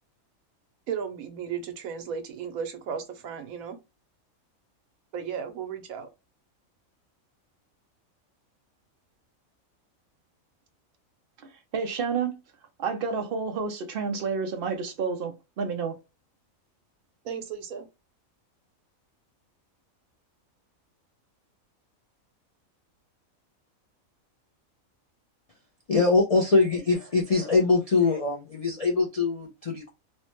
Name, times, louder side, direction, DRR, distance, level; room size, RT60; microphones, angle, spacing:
voice 1, 0.9-3.8 5.1-6.1 17.2-17.9, right 7 dB, 85° right, 1.1 m, -35 dB
voice 2, 11.7-12.4 12.8-16.0, right 5 dB, 60° right, 0.6 m, -30 dB
voice 3, 25.9-29.9, left 3 dB, 70° left, 0.3 m, -23 dB
3.2 x 2.1 x 2.9 m
omnidirectional pair, 1.5 m